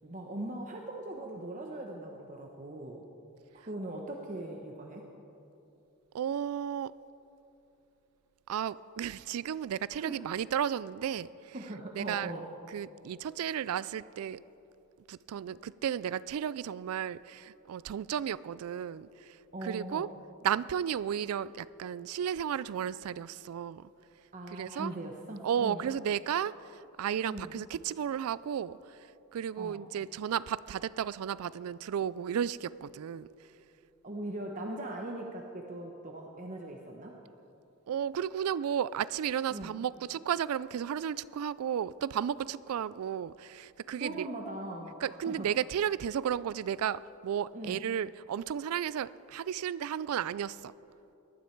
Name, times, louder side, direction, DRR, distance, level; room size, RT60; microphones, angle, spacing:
voice 1, 0.0-3.0 3.5-5.0 9.9-10.2 11.5-12.5 19.5-20.1 24.3-25.9 27.3-27.5 29.6-29.8 34.0-37.2 39.5-39.7 43.9-45.5 47.5-47.8, right 1 dB, 35° right, 1 dB, 0.9 m, -40 dB
voice 2, 6.1-6.9 8.5-11.6 12.0-12.3 12.7-14.4 15.1-19.4 19.6-20.1 20.4-23.9 24.5-24.9 25.4-26.6 27.0-29.0 29.3-33.3 37.9-44.3 45.0-50.7, right 9 dB, 80° right, 19 dB, 0.3 m, -33 dB
19.0 x 12.5 x 4.5 m, 2.9 s
head